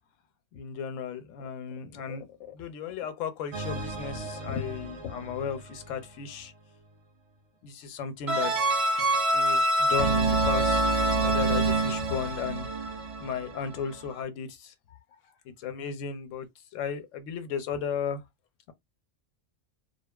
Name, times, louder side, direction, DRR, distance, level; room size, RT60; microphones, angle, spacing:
voice 1, 0.5-6.5 7.6-8.5 9.3-12.7 13.2-15.0 15.6-16.5 16.7-18.2, left 6 dB, 90° left, 0.9 m, -35 dB
sound 1, 3.5-5.6 8.3-13.7, right 2 dB, 60° right, 0.3 m, -27 dB
2.5 x 2.3 x 2.2 m
omnidirectional pair, 1.3 m